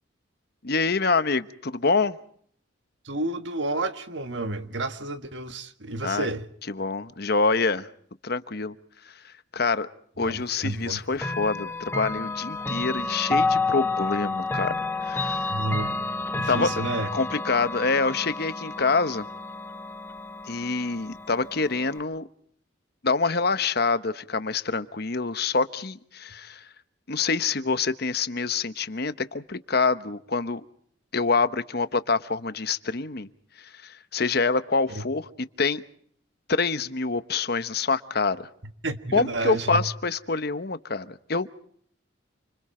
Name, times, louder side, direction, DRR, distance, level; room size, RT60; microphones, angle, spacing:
voice 1, 0.6-2.2 6.0-6.3 6.7-7.9 8.2-8.7 9.0-9.9 10.2-14.7 15.0-15.5 16.5-16.8 17.1-19.2 20.5-22.3 23.0-26.7 27.1-30.6 31.1-33.3 33.6-35.3 35.6-35.8 36.5-38.5 39.1-41.5, left 4 dB, 55° left, 1.1 m, -26 dB
voice 2, 3.0-6.4 10.2-11.0 15.5-16.0 16.3-17.1 34.9-35.0 38.8-39.8, right 2 dB, 65° right, 1.6 m, -30 dB
Chime / Clock, 11.2-22.0, left 3 dB, 10° left, 1.4 m, -30 dB
29.0 x 26.5 x 4.4 m
head